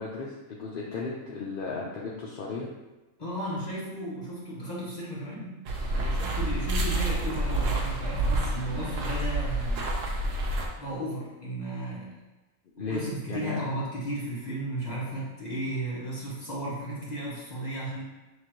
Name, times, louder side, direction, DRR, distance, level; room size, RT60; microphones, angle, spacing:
voice 1, 0.0-2.7 12.8-13.0 13.3-13.6, left 4 dB, 55° left, -4 dB, 0.6 m, -35 dB
voice 2, 3.2-5.6 5.8-9.9 10.8-12.2 12.9-18.0, right 1 dB, 35° left, -6 dB, 1.1 m, -34 dB
sound 1, 5.7-10.7, right 2 dB, 70° right, 1.0 m, -28 dB
6.6 x 2.5 x 3.0 m, 1.1 s
omnidirectional pair, 1.4 m